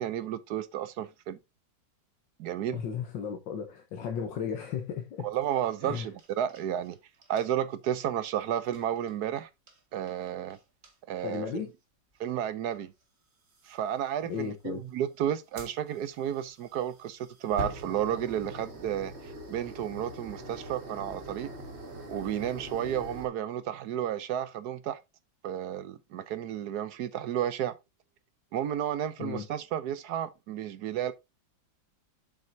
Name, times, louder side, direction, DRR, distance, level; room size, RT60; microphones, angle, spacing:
voice 1, 0.0-1.4 2.4-2.8 5.2-7.0 7.3-9.5 9.9-10.6 11.1-11.5 12.2-12.9 13.7-21.5 22.1-25.0 25.4-27.7 28.5-31.1, right 10 dB, 65° right, 1.1 m, -32 dB
voice 2, 2.7-5.3 5.8-6.1 11.2-11.7 14.2-14.8 29.2-29.4, left 7 dB, 70° left, 1.8 m, -35 dB
sound 1, 5.3-6.9 7.2-7.5 8.6-9.1 9.7-9.8 10.1-10.6 10.8-10.9 11.2-11.6 12.7-12.8 13.5-13.7 15.6-23.3, equal, 35° right, 1.9 m, -43 dB
7.7 x 7.5 x 2.7 m
omnidirectional pair, 2.1 m